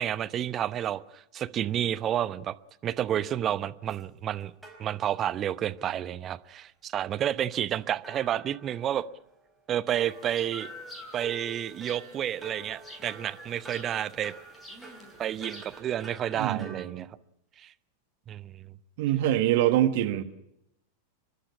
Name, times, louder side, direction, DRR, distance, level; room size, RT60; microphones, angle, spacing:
voice 1, 0.0-2.5 2.8-4.5 4.8-9.1 9.7-10.7 11.1-14.3 15.2-17.1 17.6-17.7 18.3-18.6, right 10 dB, 30° right, 0.9 m, -30 dB
sound 1, 3.9-4.0 4.6-5.4 5.8-5.9 7.7-9.3 9.9-16.9, right 2 dB, 5° right, 4.8 m, -48 dB
sound 2, 9.9-15.8, left 1 dB, 10° left, 7.7 m, -49 dB
voice 2, 16.3-17.1 19.0-20.2, right 13 dB, 50° right, 1.6 m, -25 dB
29.5 x 11.5 x 9.9 m
figure-of-eight pair, 90°, 0 cm